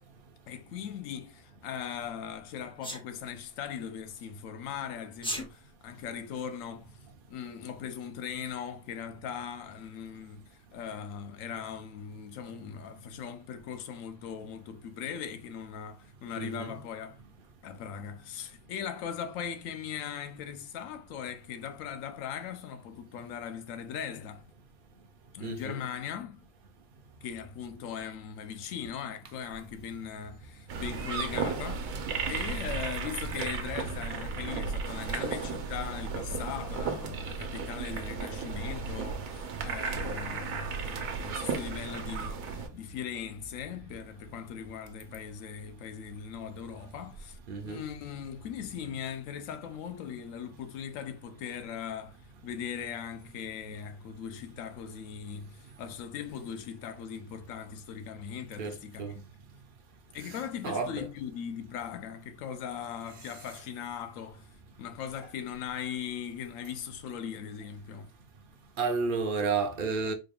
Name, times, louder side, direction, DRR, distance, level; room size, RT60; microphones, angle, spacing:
voice 1, 0.5-7.0 7.3-17.2 17.6-24.5 25.3-26.5 27.2-59.2 60.1-64.5 64.8-68.1, left 8 dB, 80° left, 1.0 m, -39 dB
Sneeze, 2.8-3.0 5.1-5.5, equal, 10° left, 0.3 m, -34 dB
voice 2, 16.4-16.8 25.4-25.8 47.5-47.8 58.6-59.1 60.2-60.3 60.6-61.1 68.8-70.1, right 4 dB, 55° right, 0.6 m, -31 dB
sound 1, 30.7-42.7, right 5 dB, 90° right, 1.1 m, -34 dB
4.1 x 2.3 x 3.4 m
omnidirectional pair, 1.4 m